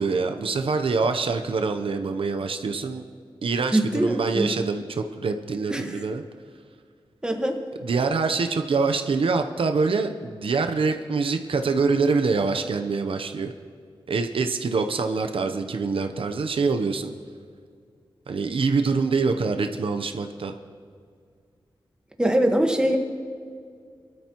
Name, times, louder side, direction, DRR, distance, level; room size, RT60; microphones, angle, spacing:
voice 1, 0.0-3.0 3.4-6.2 7.8-13.5 14.1-17.1 18.3-20.5, right 4 dB, 80° right, 6 dB, 0.8 m, -25 dB
voice 2, 3.7-4.5 5.7-5.9 7.2-7.6 22.2-23.0, right 1 dB, 10° right, 3 dB, 1.4 m, -22 dB
23.5 x 13.0 x 3.0 m, 2.2 s
wide cardioid pair, 105°, 9 cm